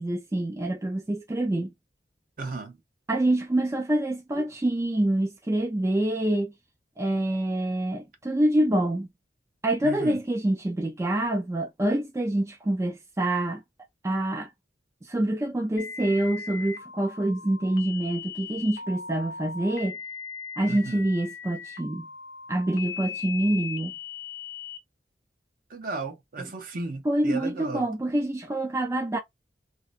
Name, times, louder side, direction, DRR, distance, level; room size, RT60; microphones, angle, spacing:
voice 1, 0.0-1.7 3.1-6.5 7.0-9.1 9.6-13.6 14.0-14.5 15.0-20.0 20.6-22.1 22.5-23.9 26.4-26.5 27.0-29.2, right 1 dB, 15° right, 0.4 m, -26 dB
voice 2, 2.4-2.8 4.4-4.5 9.8-10.2 20.7-21.0 25.7-27.8, right 3 dB, 55° right, 0.8 m, -35 dB
sound 1, 15.8-24.8, left 6 dB, 65° left, 0.7 m, -39 dB
2.7 x 2.0 x 2.4 m
head